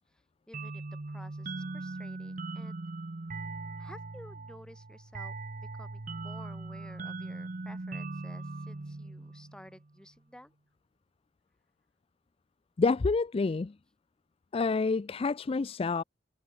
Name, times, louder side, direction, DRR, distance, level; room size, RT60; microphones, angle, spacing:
voice 1, 0.5-2.9 3.8-10.5, equal, 5° left, 6.1 m, -53 dB
sound 1, 0.5-9.9, right 3 dB, 45° right, 0.9 m, -40 dB
voice 2, 12.8-13.7 14.5-16.0, left 4 dB, 30° left, 0.4 m, -28 dB
head